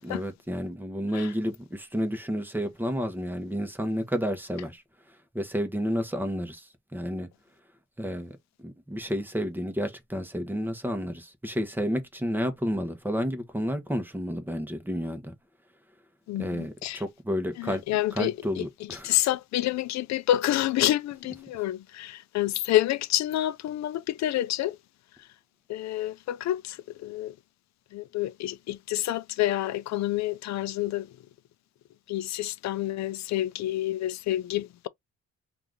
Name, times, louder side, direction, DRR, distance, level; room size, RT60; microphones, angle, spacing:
voice 1, 0.0-4.8 5.1-7.3 8.0-15.3 16.4-17.8 18.1-19.2 21.3-21.4, equal, 5° right, 0.9 m, -31 dB
voice 2, 16.3-17.0 17.6-18.6 19.0-24.8 25.7-26.8 27.0-27.3 27.9-31.1 32.1-34.9, left 14 dB, 65° left, 0.4 m, -28 dB
2.8 x 2.5 x 3.5 m
cardioid pair, 90°, 30 cm